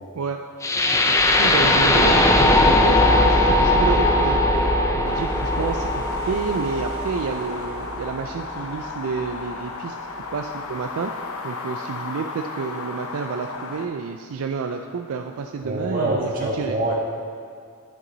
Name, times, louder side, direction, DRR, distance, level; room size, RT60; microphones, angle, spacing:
sound 1, 0.6-8.6, left 1 dB, 15° left, 0.4 m, -19 dB
voice 1, 1.1-4.4 4.9-10.0 10.3-11.1 11.4-16.8, right 5 dB, 75° right, 4 dB, 0.4 m, -29 dB
sound 2, 5.1-13.8, left 3 dB, 80° left, 0.8 m, -34 dB
voice 2, 15.6-16.9, right 2 dB, 40° right, -3 dB, 1.5 m, -25 dB
11.0 x 6.1 x 4.0 m, 2.2 s
head